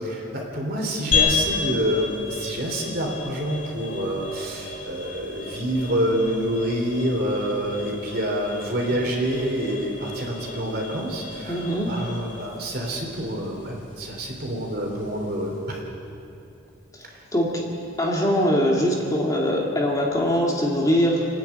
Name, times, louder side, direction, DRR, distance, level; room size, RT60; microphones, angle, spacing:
voice 1, 0.0-11.6 11.9-15.8, right 1 dB, 50° right, 0 dB, 3.5 m, -27 dB
sound 1, 1.1-15.7, left 5 dB, 40° left, 3.2 m, -32 dB
voice 2, 11.5-12.0 16.9-17.7 18.0-21.3, equal, 15° left, -2 dB, 2.3 m, -22 dB
29.5 x 10.5 x 8.7 m, 2.7 s
head